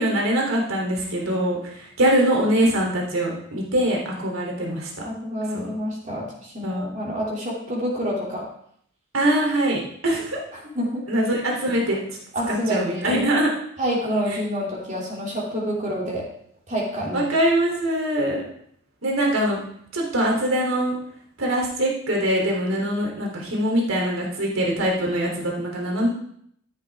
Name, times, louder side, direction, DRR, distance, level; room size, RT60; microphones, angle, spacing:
voice 1, 0.0-4.9 5.5-5.7 6.6-6.9 9.1-10.4 11.1-12.0 12.5-13.5 17.1-18.4 19.0-19.6 19.9-21.0 21.4-26.1, right 1 dB, 70° right, -1 dB, 3.5 m, -23 dB
voice 2, 5.0-8.4 10.5-11.0 12.3-13.2 13.8-16.2 16.7-17.2, equal, 35° right, -4 dB, 3.0 m, -28 dB
12.5 x 11.0 x 3.7 m, 0.67 s
head